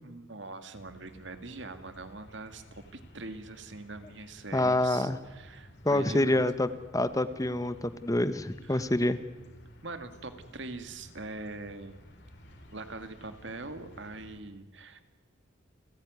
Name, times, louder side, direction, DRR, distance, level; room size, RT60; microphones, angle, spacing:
voice 1, 0.0-6.4 8.6-8.9 9.8-12.0 12.7-15.0, right 3 dB, 65° right, 9 dB, 2.1 m, -43 dB
sound 1, 0.7-14.4, equal, 55° left, 4.6 m, -54 dB
voice 2, 4.5-5.2 5.8-6.7 6.9-9.2, left 1 dB, 15° left, 12 dB, 0.9 m, -26 dB
29.5 x 16.5 x 9.6 m, 1.2 s
head